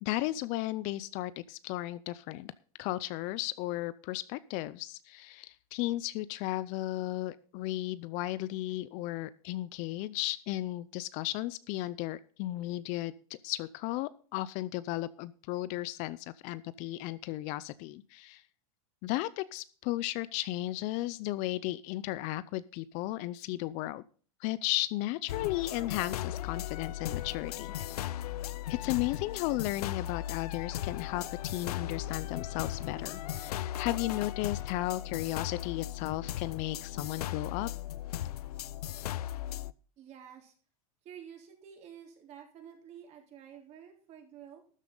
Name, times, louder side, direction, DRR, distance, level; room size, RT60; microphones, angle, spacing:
voice 1, 0.0-2.5 2.8-18.4 19.0-24.0 24.4-27.7 28.7-37.7, left 16 dB, 40° left, 17 dB, 0.5 m, -35 dB
sound 1, 25.3-39.7, left 12 dB, 90° left, 0.6 m, -37 dB
voice 2, 40.0-40.5 41.0-44.6, right 9 dB, 35° right, 2 dB, 3.6 m, -50 dB
13.0 x 10.0 x 3.9 m, 0.42 s
supercardioid pair, 140°, 19 cm